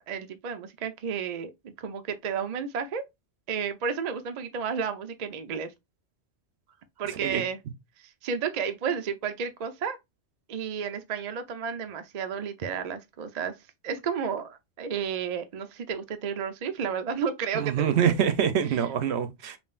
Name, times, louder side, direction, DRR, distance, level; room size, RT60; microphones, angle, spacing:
voice 1, 0.0-3.1 3.5-5.7 7.0-7.6 8.0-10.0 10.5-13.6 13.8-18.1, right 6 dB, 55° right, 0.5 m, -32 dB
voice 2, 17.5-19.6, right 8 dB, 70° right, 0.9 m, -25 dB
5.4 x 2.5 x 2.4 m
omnidirectional pair, 1.2 m